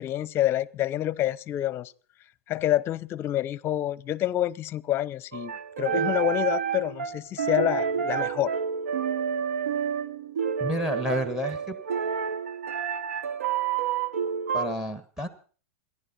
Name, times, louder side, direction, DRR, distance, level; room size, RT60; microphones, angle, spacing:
voice 1, 0.0-1.9 2.5-8.5, left 13 dB, 35° left, 0.7 m, -27 dB
sound 1, 5.3-14.7, right 7 dB, 85° right, 0.7 m, -29 dB
voice 2, 10.6-11.8 14.5-15.3, left 1 dB, 10° right, 1.5 m, -30 dB
28.5 x 11.0 x 4.2 m
hypercardioid pair, 120°, 7 cm